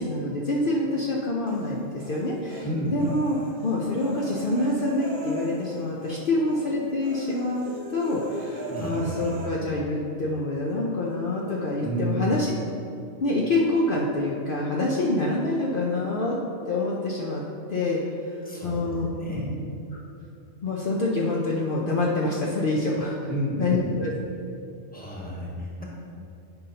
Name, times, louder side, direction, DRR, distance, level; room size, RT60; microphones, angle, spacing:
voice 1, 0.0-3.4 3.6-12.5 13.2-16.4 16.7-17.4 17.7-18.0 18.3-19.4 20.6-23.3 23.6-24.1, left 2 dB, 55° left, -4 dB, 0.8 m, -26 dB
Human voice, 1.5-2.7 3.0-6.2 6.5-6.7 7.0-9.5, right 2 dB, 65° right, 1.2 m, -39 dB
voice 2, 2.6-3.0 8.7-9.4 11.8-12.3 18.4-18.8 19.2-19.7 23.3-23.8 24.9-25.8, right 1 dB, 10° left, -4 dB, 1.2 m, -31 dB
10.5 x 5.4 x 2.8 m, 2.7 s
omnidirectional pair, 1.2 m